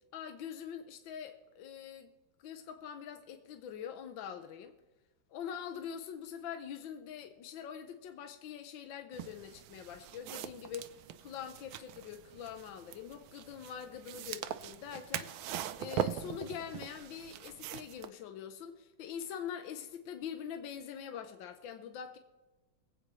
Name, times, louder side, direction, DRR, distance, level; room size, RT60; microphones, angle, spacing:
voice 1, 0.1-2.1 2.4-4.7 5.3-15.3 15.8-22.2, left 8 dB, 80° left, 1.5 m, -44 dB
sound 1, 9.1-18.1, right 10 dB, 85° right, 1.4 m, -42 dB
23.5 x 8.3 x 3.1 m
omnidirectional pair, 2.1 m